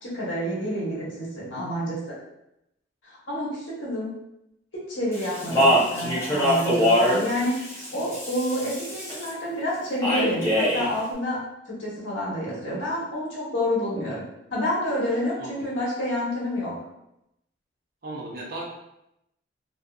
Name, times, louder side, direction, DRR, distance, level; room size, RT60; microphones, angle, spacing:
voice 1, 0.0-2.0 3.0-4.1 4.9-11.4 11.7-14.2 14.5-16.7, left 1 dB, 80° left, -6 dB, 1.0 m, -28 dB
Speech, 5.1-9.3 10.0-10.9, equal, 15° left, 0.8 m, -23 dB
voice 2, 18.0-18.6, right 2 dB, 50° right, -2 dB, 0.6 m, -35 dB
2.6 x 2.5 x 2.3 m, 0.84 s
head